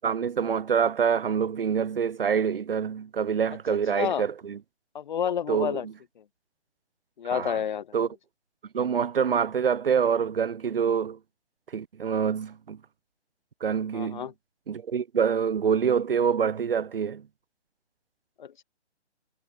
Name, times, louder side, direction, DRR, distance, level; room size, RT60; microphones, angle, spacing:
voice 1, 0.0-4.6 5.5-5.9 7.3-7.6 7.9-8.1 8.7-11.2 11.7-12.8 13.6-14.3 14.7-17.3, right 7 dB, 50° right, 6.8 m, -26 dB
voice 2, 3.9-4.2 4.9-5.9 6.2-6.3 7.2-7.9 13.9-14.3 18.4-18.6, left 8 dB, 40° left, 4.0 m, -29 dB
hypercardioid pair, 160°, 35 cm